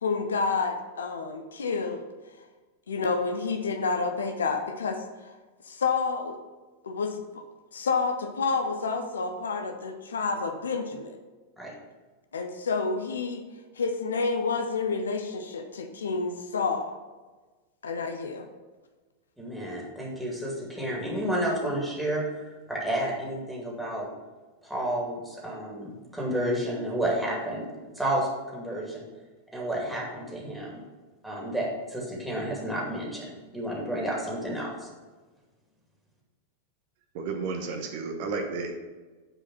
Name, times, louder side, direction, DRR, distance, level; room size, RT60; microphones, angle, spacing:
voice 1, 0.0-2.0 2.9-5.0 5.7-6.4 6.8-7.4 7.7-11.2 12.3-13.4 13.8-16.9 17.8-18.5, left 4 dB, 70° left, 6 dB, 0.8 m, -29 dB
voice 2, 19.4-22.2 22.7-24.1 24.6-27.7 27.9-29.0 29.5-30.8 31.2-34.9, right 1 dB, 5° right, -3 dB, 2.4 m, -31 dB
voice 3, 37.1-38.8, right 4 dB, 50° right, 4 dB, 1.0 m, -32 dB
8.8 x 4.9 x 5.6 m, 1.3 s
figure-of-eight pair, 90°, 0 cm